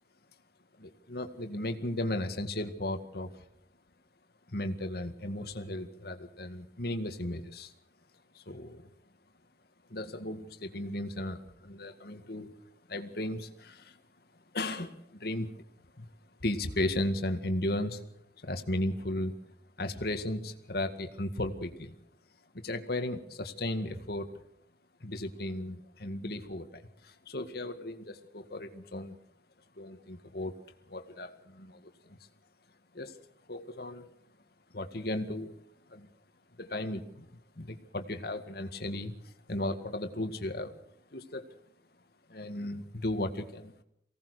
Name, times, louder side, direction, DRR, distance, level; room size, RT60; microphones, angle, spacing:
voice 1, 0.8-3.3 4.5-7.7 8.3-8.9 9.9-12.5 12.9-14.0 14.5-15.5 16.0-16.1 16.4-18.0 18.4-19.4 19.8-22.0 22.5-24.3 25.0-29.2 29.8-30.5 30.9-32.2 32.9-33.2 33.5-34.1 34.7-35.6 35.9-36.1 36.6-40.7 41.1-41.4 42.3-43.7, left 1 dB, 60° left, 7 dB, 2.0 m, -35 dB
24.0 x 18.0 x 6.6 m, 0.69 s
head